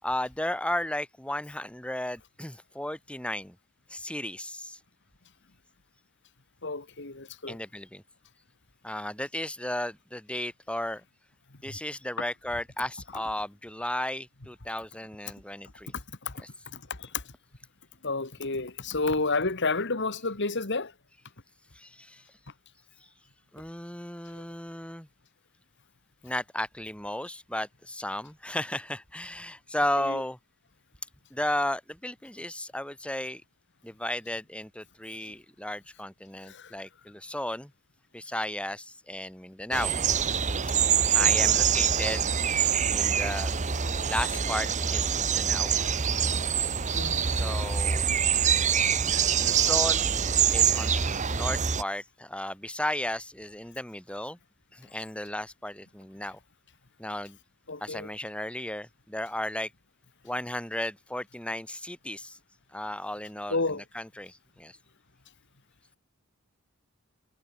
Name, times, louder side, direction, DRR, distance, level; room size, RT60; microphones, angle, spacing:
voice 1, 0.0-3.6 3.9-4.8 7.5-8.0 8.8-11.0 11.6-15.9 16.4-16.5 21.7-22.2 23.5-25.1 26.2-30.4 31.3-33.4 33.8-37.7 38.1-39.9 41.1-42.2 42.9-43.5 44.1-45.8 47.3-48.1 49.4-50.1 50.5-54.4 54.7-56.4 57.0-57.4 57.8-59.7 60.2-62.4 62.7-64.8, left 1 dB, 5° left, 3.8 m, -34 dB
voice 2, 6.6-7.6 11.7-11.8 15.9-16.4 16.7-17.2 18.0-20.9 30.1-30.2 36.5-36.7 41.2-41.5 46.9-47.2 57.7-58.1 63.5-63.8, left 3 dB, 55° left, 2.3 m, -31 dB
sound 1, 39.7-51.8, right 7 dB, 35° right, 1.0 m, -25 dB
head